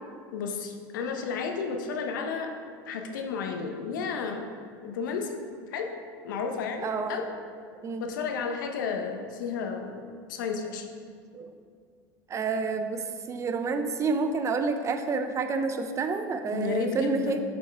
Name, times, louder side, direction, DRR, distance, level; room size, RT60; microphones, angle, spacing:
voice 1, 0.3-2.5 2.9-4.5 4.8-5.3 5.7-5.9 6.2-7.3 8.0-10.9 16.5-17.4, left 5 dB, 90° left, 4 dB, 0.7 m, -32 dB
voice 2, 6.8-7.2 7.8-8.0 11.3-11.5 12.3-17.4, right 4 dB, 30° right, 8 dB, 0.5 m, -29 dB
7.0 x 5.3 x 3.4 m, 2.1 s
supercardioid pair, 110°, 10 cm